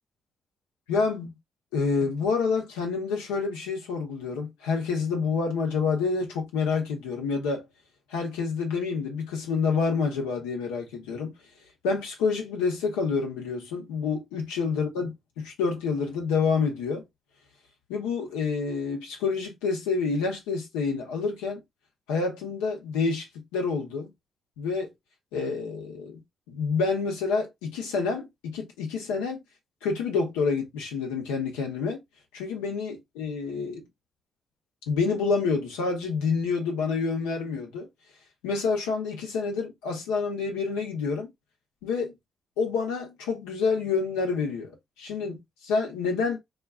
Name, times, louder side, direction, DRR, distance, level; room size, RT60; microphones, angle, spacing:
voice 1, 0.9-1.3 1.7-7.6 8.1-11.3 11.8-17.0 17.9-21.6 22.1-24.1 24.6-24.9 25.3-26.2 26.5-29.4 29.8-32.0 32.3-33.9 34.9-37.9 38.4-41.3 41.8-42.1 42.6-46.4, left 4 dB, 85° left, 0.7 m, -28 dB
2.4 x 2.2 x 2.3 m
hypercardioid pair, 40°, 0 cm